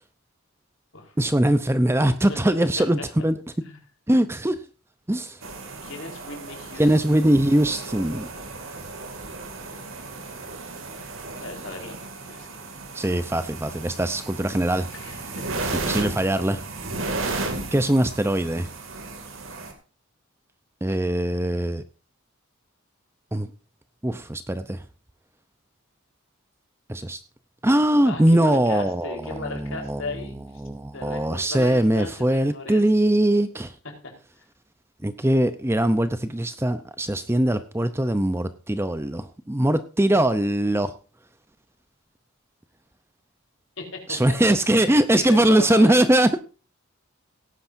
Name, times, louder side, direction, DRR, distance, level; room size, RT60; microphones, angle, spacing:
voice 1, 1.2-3.3 4.1-4.6 5.1-5.4 6.8-8.3 12.9-14.9 15.9-16.6 17.7-18.7 20.8-21.8 23.3-23.5 24.0-24.8 26.9-27.2 27.6-29.2 29.6-30.0 30.6-33.7 35.0-40.9 44.1-46.4, right 1 dB, 10° right, 12 dB, 0.6 m, -21 dB
sound 1, 5.4-19.7, right 3 dB, 60° right, 2.5 m, -34 dB
voice 2, 5.8-7.0 11.4-12.0 12.2-12.6 14.9-15.6 28.0-30.4 30.9-32.9 33.8-34.1 43.8-44.6 45.1-46.0, left 3 dB, 60° left, 3 dB, 4.2 m, -36 dB
17.5 x 10.0 x 2.6 m, 0.34 s
head